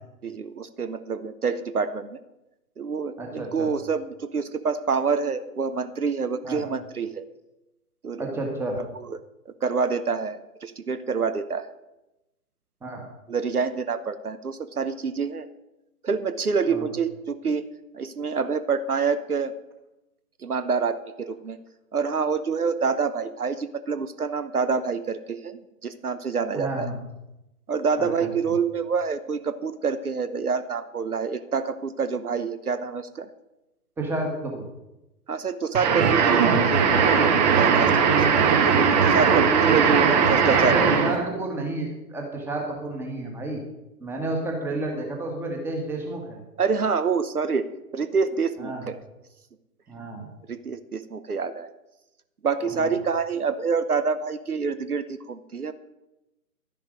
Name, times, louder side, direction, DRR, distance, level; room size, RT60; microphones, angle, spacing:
voice 1, 0.2-2.2 2.8-7.3 8.0-8.4 8.9-9.2 9.5-11.7 13.3-15.5 16.0-17.7 17.9-19.5 20.4-21.6 21.9-26.9 27.7-33.3 35.3-37.2 37.5-40.9 46.6-47.7 47.9-49.0 50.5-51.7 52.4-55.7, right 5 dB, 75° right, 12 dB, 1.1 m, -27 dB
voice 2, 3.2-3.7 6.4-6.6 8.2-8.8 12.8-13.0 16.7-16.9 26.5-27.0 28.0-28.6 34.0-34.6 40.6-43.6 44.0-46.4 48.6-48.9 49.9-50.3 52.8-53.0, right 2 dB, 5° right, 1 dB, 1.6 m, -31 dB
sound 1, 35.7-41.3, right 6 dB, 30° right, 1.5 m, -19 dB
12.0 x 10.5 x 5.1 m, 0.95 s
figure-of-eight pair, 130°, 45 cm